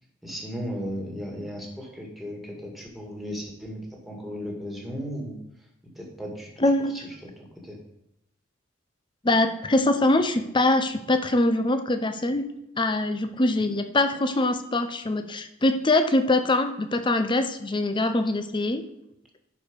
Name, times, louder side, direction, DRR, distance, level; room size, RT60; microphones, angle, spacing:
voice 1, 0.2-5.7 6.0-7.8, equal, ahead, -1 dB, 2.0 m, -36 dB
voice 2, 6.6-7.0 9.2-12.4 12.8-18.8, left 2 dB, 25° left, 8 dB, 0.7 m, -23 dB
11.0 x 4.8 x 5.3 m, 0.82 s
head